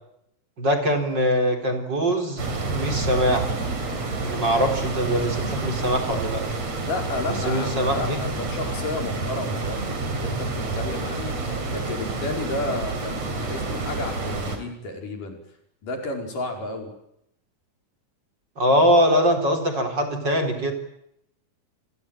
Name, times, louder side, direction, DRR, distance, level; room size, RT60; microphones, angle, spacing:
voice 1, 0.6-2.4 2.7-3.5 4.2-6.4 7.4-8.2 18.6-20.7, equal, 35° right, 5 dB, 4.7 m, -22 dB
sound 1, 2.4-14.6, right 3 dB, 55° right, 5.2 m, -29 dB
voice 2, 6.8-15.4 15.8-16.9, left 2 dB, 80° left, 3 dB, 6.7 m, -32 dB
29.0 x 20.5 x 9.1 m, 0.77 s
omnidirectional pair, 3.7 m